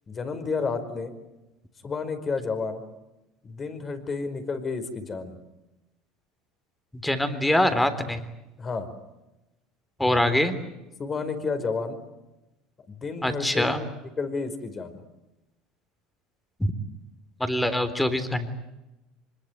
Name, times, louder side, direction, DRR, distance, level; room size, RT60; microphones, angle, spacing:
voice 1, 0.1-1.1 1.8-2.8 3.4-5.4 8.6-8.9 11.0-12.0 12.9-13.7 14.2-15.0, left 4 dB, 30° left, 8 dB, 5.0 m, -31 dB
voice 2, 7.0-8.2 10.0-10.6 13.2-13.8 16.6-16.7 17.4-18.5, left 1 dB, 5° left, 10 dB, 3.7 m, -24 dB
25.0 x 21.5 x 9.4 m, 0.97 s
hypercardioid pair, 90°, 0 cm